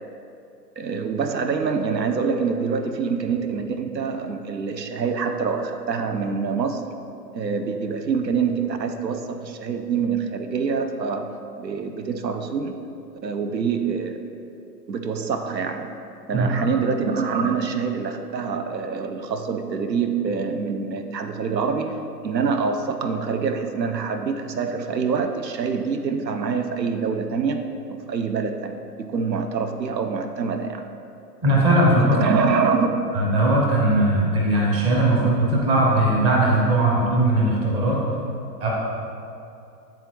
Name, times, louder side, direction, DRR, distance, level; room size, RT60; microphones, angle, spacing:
voice 1, 0.8-6.8 7.3-12.8 13.2-14.2 14.9-15.9 16.3-22.0 22.2-30.9 32.0-32.9, right 5 dB, 85° right, 7 dB, 0.7 m, -25 dB
voice 2, 31.4-32.2 33.1-38.0 38.6-38.7, right 1 dB, 15° right, -3 dB, 0.5 m, -19 dB
9.3 x 3.5 x 3.0 m, 2.6 s
figure-of-eight pair, 120°, 50 cm